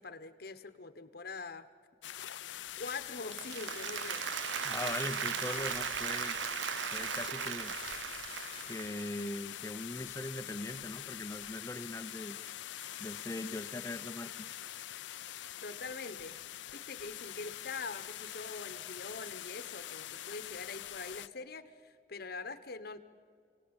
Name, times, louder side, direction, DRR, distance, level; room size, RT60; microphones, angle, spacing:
voice 1, 0.0-1.7 2.8-4.2 15.6-16.4 16.7-23.0, left 4 dB, 60° left, 10 dB, 1.1 m, -44 dB
sound 1, 2.0-21.3, left 12 dB, 80° left, 0.6 m, -44 dB
Applause, 3.1-9.4, right 9 dB, 85° right, 0.5 m, -37 dB
voice 2, 4.6-6.4 6.9-7.7 8.7-12.4 13.0-14.5, left 1 dB, 15° left, 11 dB, 0.7 m, -40 dB
29.0 x 18.0 x 8.9 m, 2.3 s
head